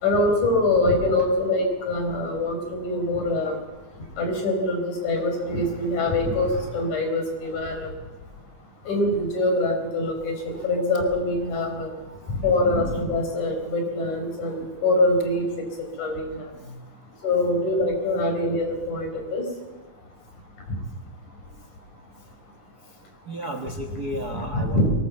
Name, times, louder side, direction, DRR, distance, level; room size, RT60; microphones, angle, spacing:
voice 1, 0.0-3.6 4.2-7.9 8.9-11.9 12.3-15.5 16.0-16.4 17.2-19.4 24.3-24.9, left 2 dB, 70° left, 3 dB, 5.9 m, -24 dB
voice 2, 23.3-24.9, right 1 dB, 40° right, 5 dB, 1.6 m, -33 dB
23.0 x 19.5 x 8.0 m, 1.2 s
omnidirectional pair, 3.6 m